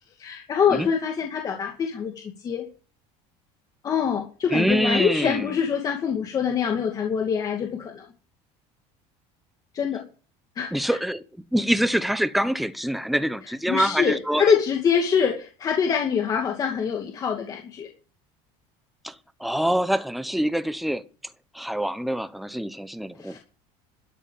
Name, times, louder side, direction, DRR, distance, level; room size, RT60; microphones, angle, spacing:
voice 1, 0.2-2.7 3.8-8.1 9.7-10.0 10.6-10.7 13.7-17.9 23.2-23.4, left 7 dB, 25° left, 2.4 m, -24 dB
voice 2, 4.5-5.5 10.7-11.2 11.5-14.5 19.0-19.1 19.4-21.0 21.5-23.4, equal, ahead, 0.9 m, -25 dB
12.5 x 8.1 x 8.8 m
cardioid pair, 165°, 14 cm